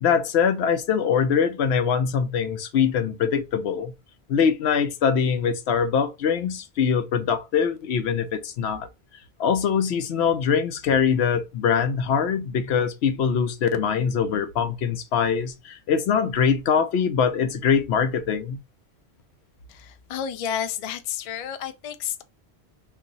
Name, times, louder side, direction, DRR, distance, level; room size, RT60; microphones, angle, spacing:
voice 1, 0.0-3.9 4.3-8.9 9.4-18.6, left 7 dB, 80° left, 0.9 m, -23 dB
voice 2, 19.7-22.2, left 9 dB, 65° left, 0.3 m, -31 dB
2.8 x 2.5 x 3.9 m
omnidirectional pair, 1.1 m